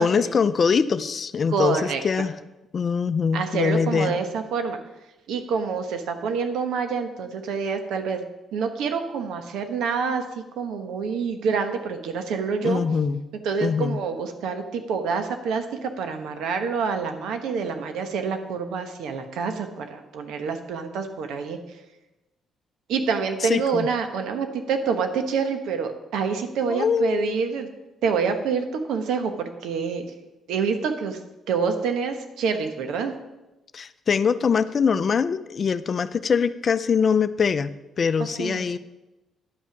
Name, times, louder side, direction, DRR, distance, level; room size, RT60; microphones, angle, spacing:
voice 1, 0.0-2.4 2.7-4.2 12.6-13.2 13.6-14.0 23.4-23.9 26.7-27.4 33.7-37.7 38.0-38.8, left 6 dB, 45° left, 14 dB, 0.5 m, -23 dB
voice 2, 1.5-2.0 3.3-4.8 5.3-8.2 8.5-12.8 13.4-21.6 22.9-27.7 28.0-30.0 30.5-31.2 31.5-33.1 38.4-38.7, right 5 dB, 85° right, 7 dB, 1.1 m, -27 dB
10.5 x 5.9 x 5.9 m, 1.0 s
cardioid pair, 90°, 0 cm